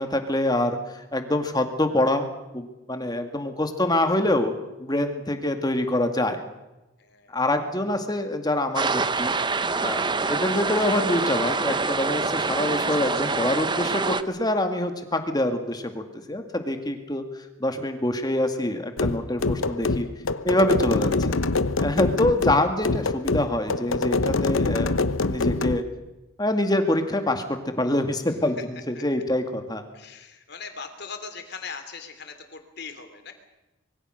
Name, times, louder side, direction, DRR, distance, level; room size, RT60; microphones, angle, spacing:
voice 1, 0.0-2.3 2.5-6.4 7.3-9.3 9.8-17.3 17.6-20.1 20.4-21.4 21.8-24.9 25.2-25.9 26.4-29.8, left 1 dB, 20° left, 6 dB, 2.2 m, -25 dB
voice 2, 7.0-7.4 12.7-12.8 13.2-13.4 28.6-28.7 28.9-29.0 29.9-33.3, left 5 dB, 50° left, 7 dB, 3.3 m, -40 dB
sound 1, 8.7-14.2, right 4 dB, 20° right, 0.8 m, -26 dB
sound 2, 19.0-25.8, left 3 dB, 75° left, 1.0 m, -25 dB
25.5 x 22.5 x 6.5 m, 1.0 s
head